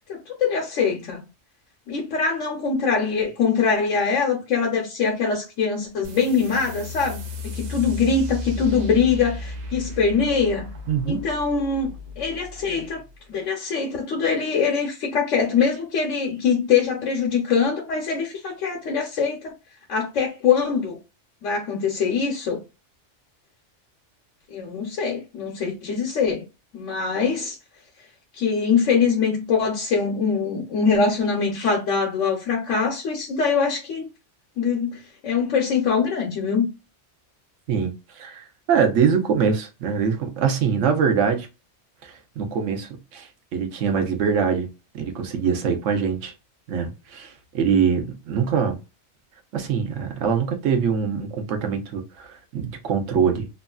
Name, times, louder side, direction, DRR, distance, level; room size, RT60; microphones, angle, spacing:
voice 1, 0.1-1.2 1.9-7.2 7.5-10.7 11.1-13.0 13.3-19.5 19.9-21.0 21.4-22.6 24.5-26.4 26.7-27.6 28.3-34.1 34.6-36.7, left 5 dB, 85° left, 1.1 m, -23 dB
sound 1, 6.0-13.2, left 2 dB, 60° right, 0.4 m, -35 dB
voice 2, 10.9-11.2 37.7-41.5 42.0-44.7 44.9-46.3 46.7-48.8 49.5-53.5, right 6 dB, 85° right, 1.1 m, -23 dB
3.1 x 2.4 x 2.2 m
omnidirectional pair, 1.2 m